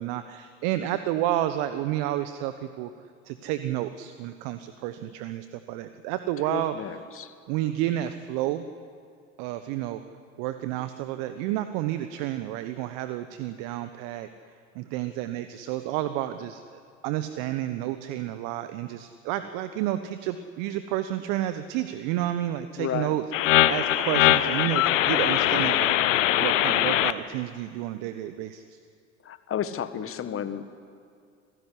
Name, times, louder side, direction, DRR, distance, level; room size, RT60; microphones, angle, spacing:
voice 1, 0.0-2.9 3.2-7.0 7.5-8.6 9.4-10.0 10.4-28.8, right 13 dB, 55° right, 11 dB, 1.1 m, -31 dB
voice 2, 6.5-7.3 22.8-23.1 29.2-30.8, left 9 dB, 35° left, 10 dB, 1.7 m, -32 dB
sound 1, 23.3-27.1, left 13 dB, 75° left, 0.9 m, -22 dB
26.5 x 16.0 x 10.0 m, 2.3 s
hypercardioid pair, 75°, 38 cm